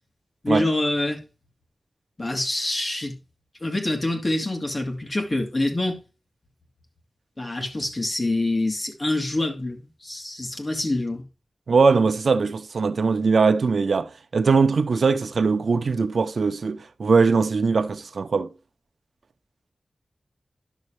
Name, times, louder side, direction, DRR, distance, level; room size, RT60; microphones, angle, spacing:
voice 1, 0.4-1.2 2.2-3.1 3.6-6.0 7.4-11.2, left 2 dB, 30° left, 2.1 m, -26 dB
voice 2, 11.7-18.5, right 4 dB, 75° right, 0.7 m, -21 dB
11.0 x 6.4 x 3.3 m
wide cardioid pair, 100°, 0 cm